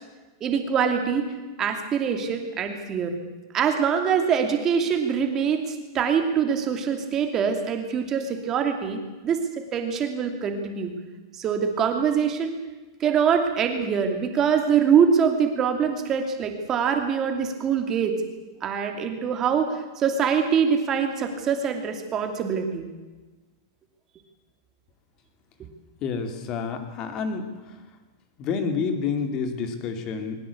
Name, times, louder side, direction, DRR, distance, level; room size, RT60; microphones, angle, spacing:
voice 1, 0.4-1.3 1.6-3.1 3.5-9.0 9.2-9.5 9.7-10.9 11.4-12.6 13.0-18.1 18.6-22.9, right 7 dB, 20° right, 5 dB, 2.7 m, -24 dB
voice 2, 26.0-27.5 28.4-30.4, left 5 dB, 25° left, 7 dB, 2.6 m, -28 dB
21.5 x 20.0 x 8.5 m, 1.2 s
supercardioid pair, 175°, 2 cm